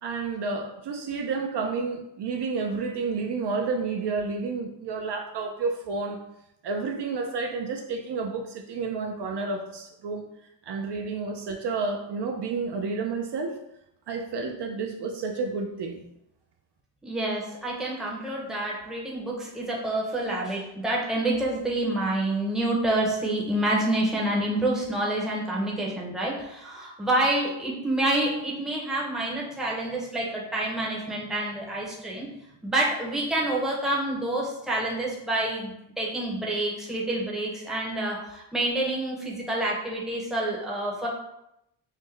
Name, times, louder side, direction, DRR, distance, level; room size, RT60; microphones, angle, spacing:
voice 1, 0.0-6.2 6.6-10.2 10.7-13.5 14.1-16.0, right 4 dB, 60° right, 3 dB, 0.5 m, -30 dB
voice 2, 17.0-32.3 32.6-41.1, right 1 dB, ahead, -4 dB, 0.6 m, -28 dB
5.6 x 2.1 x 3.2 m, 0.83 s
wide cardioid pair, 175°, 47 cm